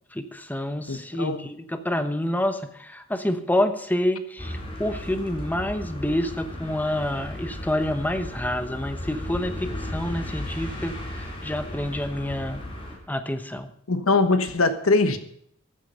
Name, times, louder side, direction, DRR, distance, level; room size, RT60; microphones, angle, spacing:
voice 1, 0.1-12.6 13.1-13.7, left 1 dB, 10° left, 9 dB, 1.0 m, -28 dB
voice 2, 0.9-1.4 13.9-15.2, left 3 dB, 85° left, 10 dB, 1.3 m, -22 dB
sound 1, 4.4-12.9, left 1 dB, 25° left, 3.8 m, -35 dB
14.5 x 8.6 x 5.5 m, 0.68 s
head